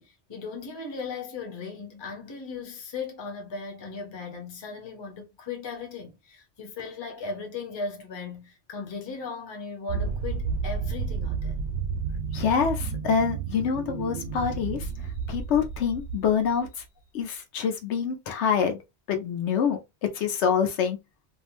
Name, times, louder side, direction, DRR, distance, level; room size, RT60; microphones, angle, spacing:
voice 1, 0.0-11.6, left 4 dB, 30° left, 0.6 m, -37 dB
sound 1, 9.9-16.7, right 5 dB, 70° right, 0.8 m, -31 dB
voice 2, 12.3-14.9 15.3-16.7 17.1-18.8 19.1-21.0, left 7 dB, 85° left, 1.0 m, -26 dB
2.6 x 2.0 x 2.9 m
omnidirectional pair, 1.2 m